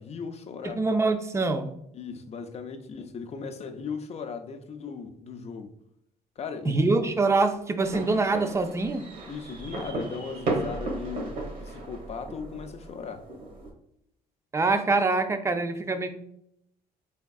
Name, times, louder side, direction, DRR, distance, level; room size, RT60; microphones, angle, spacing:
voice 1, 0.0-0.8 1.9-5.7 6.4-6.9 9.3-13.3, left 5 dB, 40° left, 0.5 m, -37 dB
voice 2, 0.6-1.7 6.6-9.0 14.5-16.1, right 3 dB, 15° right, 0.4 m, -25 dB
sound 1, 7.8-13.7, right 2 dB, 55° right, 1.1 m, -35 dB
4.3 x 3.5 x 2.3 m
cardioid pair, 110°, 17 cm